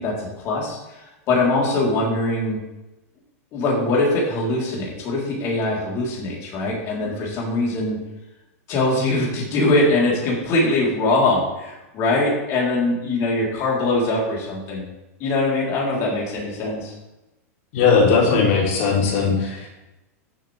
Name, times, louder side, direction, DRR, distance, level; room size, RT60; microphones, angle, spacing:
voice 1, 0.0-2.6 3.5-8.0 8.7-14.9 15.2-16.9, left 2 dB, 35° left, -4 dB, 3.8 m, -22 dB
voice 2, 17.7-19.7, left 5 dB, 60° left, -2 dB, 3.1 m, -18 dB
14.0 x 7.7 x 3.5 m, 0.98 s
supercardioid pair, 145°, 8 cm